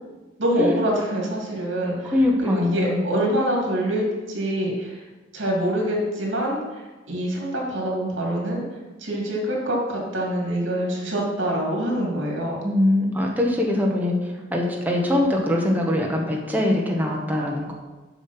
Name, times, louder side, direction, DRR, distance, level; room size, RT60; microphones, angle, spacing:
voice 1, 0.4-2.1 2.4-5.0 5.3-8.6 9.0-12.6, right 1 dB, 80° right, -2 dB, 2.6 m, -25 dB
voice 2, 2.0-3.0 12.6-17.7, left 1 dB, 10° right, -1 dB, 1.2 m, -22 dB
7.1 x 6.3 x 5.8 m, 1.2 s
head